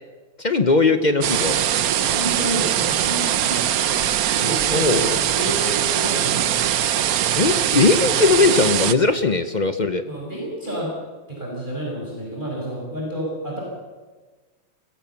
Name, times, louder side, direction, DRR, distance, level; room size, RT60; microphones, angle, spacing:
voice 1, 0.4-1.6 4.7-5.1 7.4-10.0, left 3 dB, 55° left, 9 dB, 0.5 m, -19 dB
sound 1, 1.2-8.9, right 10 dB, 60° right, 1.0 m, -21 dB
voice 2, 2.1-3.6 4.3-6.8 9.6-10.9 11.3-13.6, equal, 25° right, -3 dB, 5.6 m, -30 dB
23.5 x 16.0 x 7.1 m, 1.3 s
omnidirectional pair, 2.1 m